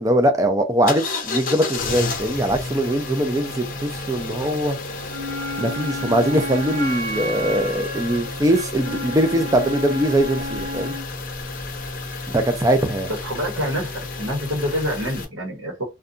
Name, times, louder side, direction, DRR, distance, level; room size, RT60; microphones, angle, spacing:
voice 1, 0.0-4.8 5.6-11.0 12.3-13.1, right 1 dB, 15° right, 0.4 m, -21 dB
sound 1, 0.9-15.2, left 3 dB, 45° left, 0.6 m, -31 dB
Wind instrument woodwind instrument, 5.1-11.1, left 1 dB, 50° right, 0.7 m, -31 dB
voice 2, 13.1-15.8, equal, 75° right, 1.0 m, -26 dB
2.6 x 2.2 x 2.5 m
head